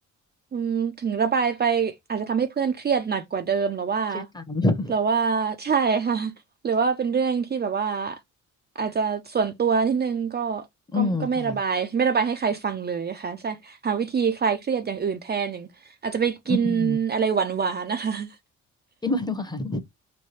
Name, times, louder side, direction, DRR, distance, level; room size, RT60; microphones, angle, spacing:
voice 1, 0.5-4.3 4.9-6.3 6.6-8.2 8.8-10.6 10.9-15.7 16.0-18.3, right 6 dB, 35° right, 0.5 m, -25 dB
voice 2, 4.1-4.9 10.9-11.6 16.5-17.0 19.0-19.8, left 2 dB, 15° left, 0.9 m, -26 dB
3.2 x 2.2 x 4.2 m
cardioid pair, 90°, 30 cm